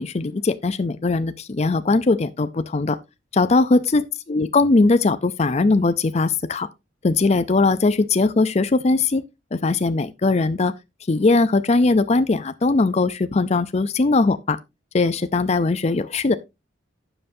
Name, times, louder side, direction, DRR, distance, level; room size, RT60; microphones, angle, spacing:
voice 1, 0.0-3.0 3.3-6.7 7.0-9.2 9.5-10.7 11.1-14.6 14.9-16.4, left 3 dB, 35° left, 0.5 m, -20 dB
12.0 x 7.8 x 2.7 m
head